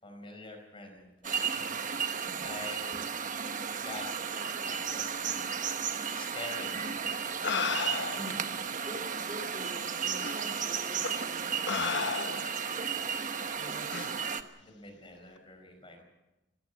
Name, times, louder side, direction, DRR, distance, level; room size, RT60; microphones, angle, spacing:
voice 1, 0.0-2.9 3.7-5.6 5.9-7.9 13.0-13.2 13.6-16.0, left 2 dB, 30° left, 4 dB, 5.0 m, -48 dB
sound 1, 1.2-14.4, right 7 dB, 45° right, 1.1 m, -34 dB
sound 2, 6.8-6.9 7.4-8.4 9.3-9.4 10.2-10.4 11.0-11.2 11.7-12.6 13.9-14.1, left 5 dB, 65° left, 1.1 m, -33 dB
voice 2, 8.1-12.6, left 1 dB, 30° right, 0 dB, 3.8 m, -46 dB
22.0 x 16.5 x 8.3 m, 1.0 s
head